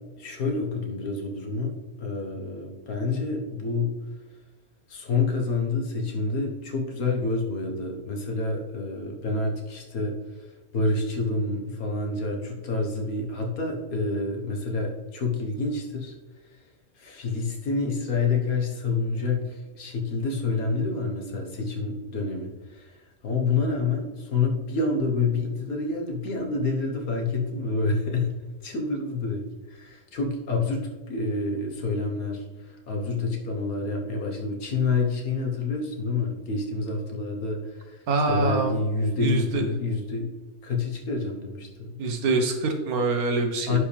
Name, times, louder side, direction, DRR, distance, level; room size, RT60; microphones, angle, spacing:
voice 1, 0.2-4.0 4.9-16.1 17.0-28.3 28.6-40.3 40.6-42.0 43.7-43.8, left 3 dB, 80° left, 1 dB, 1.8 m, -28 dB
voice 2, 38.1-38.7 39.2-39.7 42.0-43.8, right 3 dB, 85° right, 5 dB, 1.5 m, -25 dB
11.0 x 4.9 x 3.4 m, 1.3 s
omnidirectional pair, 1.5 m